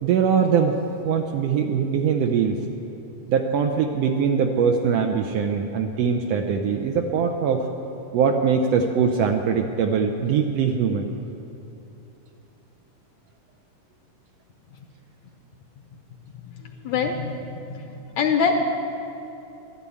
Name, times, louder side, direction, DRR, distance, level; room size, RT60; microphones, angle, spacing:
voice 1, 0.0-2.6 3.3-7.7 8.1-11.1, right 6 dB, 90° right, 3 dB, 1.4 m, -22 dB
voice 2, 16.8-17.9 18.2-18.6, left 5 dB, 75° left, 4 dB, 1.8 m, -23 dB
12.5 x 12.0 x 8.5 m, 2.9 s
omnidirectional pair, 3.8 m